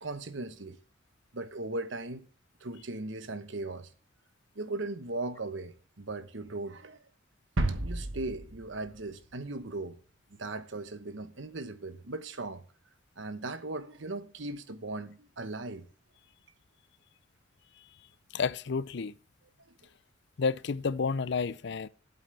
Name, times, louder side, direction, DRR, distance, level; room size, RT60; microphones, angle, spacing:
voice 1, 0.0-0.8 1.3-2.2 2.6-3.9 4.5-7.0 7.8-10.0 10.3-12.6 13.2-15.9, right 2 dB, 70° right, 1.2 m, -38 dB
sound 1, 7.6-9.4 9.7-9.8, right 2 dB, 85° right, 1.3 m, -33 dB
voice 2, 18.3-19.1 20.4-21.9, left 5 dB, 60° left, 0.5 m, -30 dB
12.5 x 8.3 x 3.4 m
head